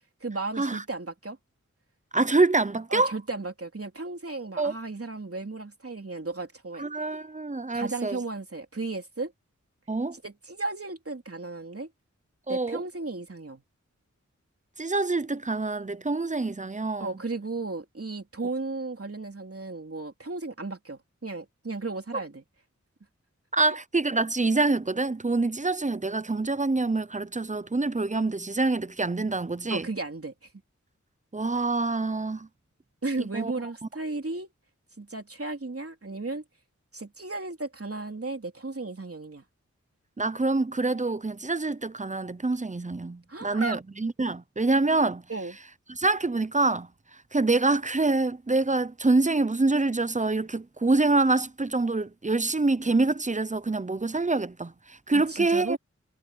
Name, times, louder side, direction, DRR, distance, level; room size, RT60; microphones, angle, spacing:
voice 1, 0.2-1.4 2.9-6.8 7.7-9.3 10.2-11.9 12.5-13.6 17.0-22.4 29.7-30.3 33.0-34.5 35.0-36.4 36.9-39.4 43.3-43.8 45.3-45.5 55.1-55.8, right 3 dB, 50° right, 3.4 m, -34 dB
voice 2, 2.1-3.1 4.6-4.7 6.8-8.2 9.9-10.2 12.5-12.8 14.8-17.1 23.5-29.9 31.3-32.5 33.2-33.5 40.2-45.2 45.9-46.9 47.3-55.8, right 3 dB, 25° right, 0.7 m, -26 dB
wide cardioid pair, 65°, 30 cm